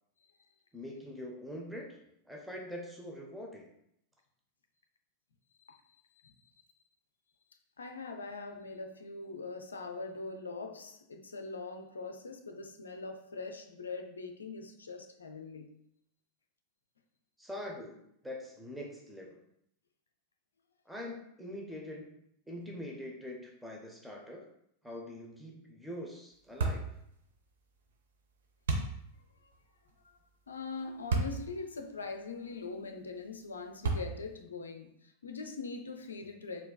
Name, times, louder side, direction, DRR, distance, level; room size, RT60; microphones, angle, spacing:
voice 1, 0.7-3.7 17.4-19.4 20.9-22.2 22.5-24.5 24.8-26.8, left 1 dB, 5° right, -1 dB, 0.7 m, -44 dB
voice 2, 7.8-15.8 29.4-29.5 30.0-30.2 30.5-36.7, left 3 dB, 70° left, 5 dB, 0.4 m, -42 dB
sound 1, 26.6-26.9 28.7-29.0 31.1-31.4 32.0-32.1 33.8-34.3, right 3 dB, 60° right, 0.6 m, -30 dB
4.4 x 3.6 x 2.3 m, 0.73 s
figure-of-eight pair, 90°, 0 cm